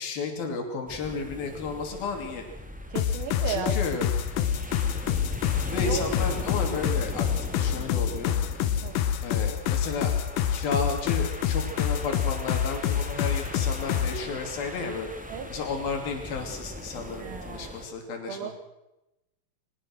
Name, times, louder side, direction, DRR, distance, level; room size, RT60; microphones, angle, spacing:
voice 1, 0.0-2.4 3.5-4.1 5.7-8.4 9.2-10.1 10.5-15.1 15.5-18.5, left 4 dB, 90° left, 4 dB, 4.7 m, -33 dB
sound 1, 0.9-17.9, equal, 5° right, 1.2 m, -40 dB
voice 2, 2.9-3.7 4.4-4.5 5.8-6.1 8.8-9.0 15.3-15.5 17.2-17.8 18.3-18.5, right 7 dB, 90° right, 8 dB, 3.8 m, -34 dB
sound 2, 3.0-14.2, left 9 dB, 75° left, 2.5 m, -27 dB
21.5 x 20.0 x 6.2 m, 0.92 s
omnidirectional pair, 4.1 m